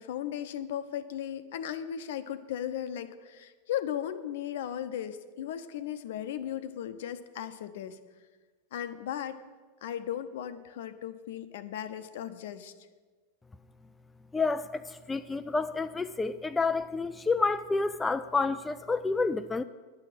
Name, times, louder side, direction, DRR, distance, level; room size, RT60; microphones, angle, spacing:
voice 1, 0.0-8.0 8.7-9.4 9.8-12.7, left 10 dB, 55° left, 12 dB, 0.7 m, -36 dB
voice 2, 14.3-19.6, left 3 dB, 10° left, 10 dB, 0.3 m, -29 dB
10.5 x 6.3 x 8.8 m, 1.4 s
figure-of-eight pair, 90°, 0 cm